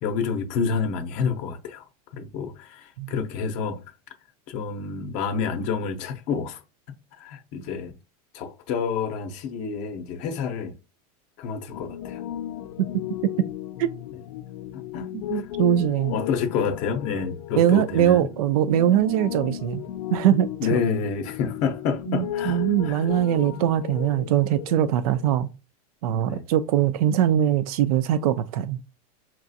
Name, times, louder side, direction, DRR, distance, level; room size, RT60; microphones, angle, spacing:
voice 1, 0.0-1.8 2.1-3.8 4.5-6.6 7.2-7.9 8.3-10.7 11.4-12.2 14.7-15.5 16.1-18.3 20.6-23.1 26.2-26.4, left 6 dB, 40° left, 0.6 m, -28 dB
Piano, 11.7-25.4, left 11 dB, 85° left, 0.4 m, -35 dB
voice 2, 15.1-16.2 17.6-19.8 20.1-20.8 22.1-25.5 26.0-28.8, right 11 dB, 75° right, 0.4 m, -22 dB
5.8 x 2.4 x 2.6 m
supercardioid pair, 160°, 20 cm